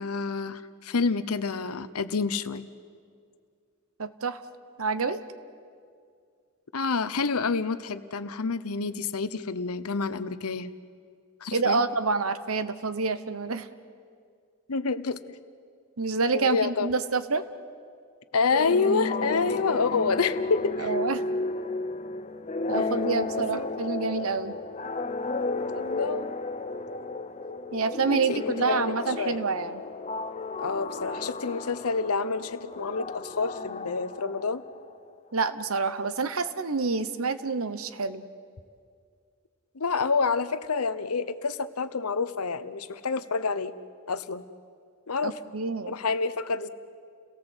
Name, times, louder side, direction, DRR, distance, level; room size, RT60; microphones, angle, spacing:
voice 1, 0.0-2.6 6.7-10.7 11.4-11.8 14.7-15.2 16.3-16.9 18.3-20.9 22.7-23.1 23.5-23.7 25.7-26.3 28.1-29.4 30.6-34.6 39.7-43.7 44.1-44.4 45.1-45.4 45.9-46.7, left 4 dB, 90° left, 13 dB, 0.9 m, -28 dB
voice 2, 4.0-4.4 4.8-5.2 11.5-13.7 16.0-17.5 20.8-21.2 22.7-24.6 27.7-29.8 35.3-38.2 45.2-46.0, right 4 dB, 75° right, 13 dB, 1.0 m, -28 dB
sound 1, 18.5-34.9, left 3 dB, 30° left, 0.6 m, -33 dB
29.5 x 17.5 x 8.1 m, 2.2 s
head